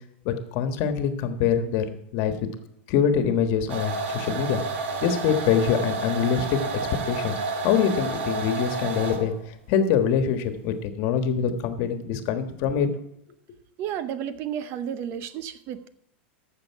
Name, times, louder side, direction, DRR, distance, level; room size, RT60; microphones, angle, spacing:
voice 1, 0.2-2.3 2.9-4.6 5.0-6.6 7.1-7.3 7.6-9.3 9.7-12.9, left 7 dB, 50° left, 1.4 m, -24 dB
sound 1, 3.7-9.4, right 3 dB, 80° right, 1.7 m, -30 dB
voice 2, 13.8-15.9, right 9 dB, 40° right, 0.7 m, -32 dB
14.0 x 6.7 x 4.7 m
supercardioid pair, 140°, 6 cm